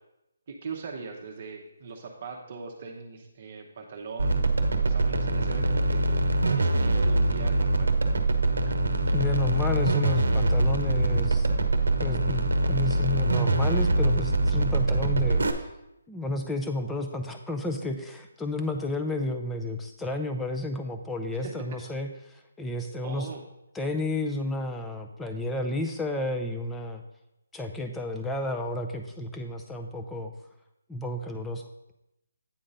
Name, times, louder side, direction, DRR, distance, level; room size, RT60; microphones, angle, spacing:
voice 1, 0.5-4.4 4.7-6.2 6.6-7.9 21.4-21.8 23.0-23.4, right 4 dB, 40° right, 1 dB, 0.8 m, -40 dB
sound 1, 4.2-15.5, right 2 dB, 90° right, 0.8 m, -24 dB
voice 2, 9.1-11.5 12.0-15.4 16.1-23.3 23.7-27.0 27.5-30.3 30.9-31.6, left 1 dB, 5° left, 4 dB, 0.5 m, -32 dB
8.8 x 3.8 x 5.3 m, 0.87 s
hypercardioid pair, 170°, 0 cm